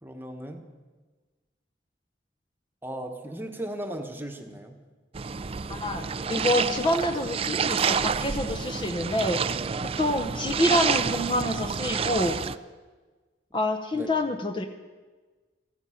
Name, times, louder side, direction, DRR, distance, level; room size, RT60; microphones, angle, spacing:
voice 1, 0.0-0.6 2.8-4.8 13.9-14.1, right 1 dB, 10° right, 4 dB, 1.2 m, -36 dB
sound 1, 5.1-12.5, right 6 dB, 30° right, 0.4 m, -29 dB
voice 2, 5.7-9.4 9.8-12.4 13.5-14.7, left 1 dB, 25° left, 6 dB, 0.8 m, -27 dB
15.0 x 14.5 x 5.8 m, 1.3 s
head